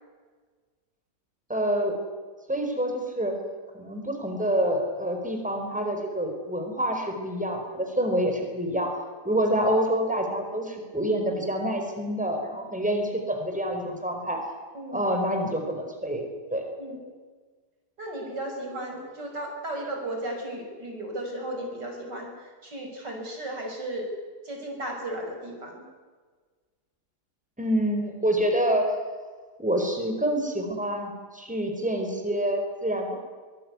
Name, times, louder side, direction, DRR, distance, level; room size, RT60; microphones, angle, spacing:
voice 1, 1.5-2.0 2.5-3.3 3.7-8.9 9.2-14.4 14.9-16.2 16.5-16.6 27.6-28.9 29.6-33.2, right 1 dB, 5° right, 3 dB, 4.7 m, -27 dB
voice 2, 18.0-24.1 24.4-25.8, right 1 dB, 85° right, 1 dB, 6.9 m, -35 dB
23.5 x 20.0 x 9.7 m, 1.4 s
omnidirectional pair, 1.8 m